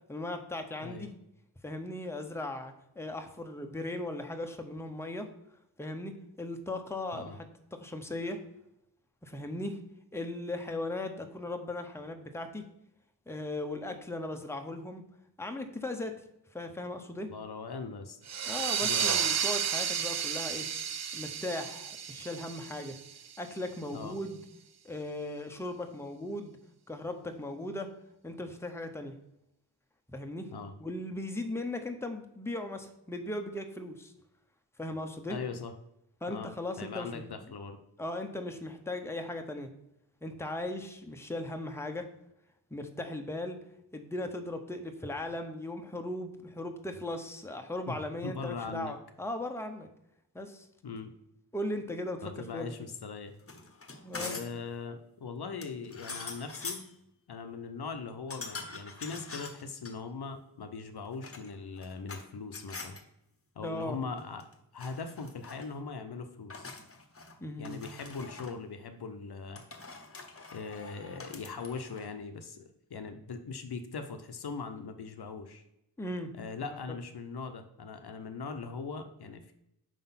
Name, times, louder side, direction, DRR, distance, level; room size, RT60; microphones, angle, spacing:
voice 1, 0.1-1.1 1.6-5.3 5.8-8.4 9.2-9.8 10.1-12.6 13.3-15.0 15.4-16.1 16.5-17.3 18.5-20.7 21.1-23.0 23.4-24.4 24.8-26.6 26.9-27.9 28.2-29.1 30.1-30.5 30.8-34.1 34.8-35.4 36.2-37.5 38.0-39.7 40.2-42.1 42.7-43.6 43.9-49.9 50.3-50.7 51.5-52.9 54.0-54.4 63.6-64.0 67.4-67.8 76.0-76.3 76.6-76.8, left 1 dB, 5° left, 5 dB, 0.8 m, -38 dB
voice 2, 17.3-18.2 18.8-19.1 23.9-24.2 30.5-30.7 35.3-35.7 36.3-37.8 47.9-48.0 48.2-48.9 50.8-51.1 52.2-53.3 54.2-56.9 57.3-63.0 63.6-64.5 64.7-66.7 67.6-69.6 70.5-75.6 76.3-79.5, left 4 dB, 65° left, 7 dB, 0.7 m, -40 dB
sound 1, 18.3-23.6, right 7 dB, 40° right, 0.4 m, -32 dB
sound 2, 53.4-54.6 55.6-56.9 58.3-59.9 61.0-62.2 62.5-63.0 64.2-64.5 64.8-65.7 66.5-67.4 67.6-68.6 69.5-72.1, left 3 dB, 35° left, 0.9 m, -44 dB
5.0 x 3.8 x 5.7 m, 0.81 s
cardioid pair, 50°, 41 cm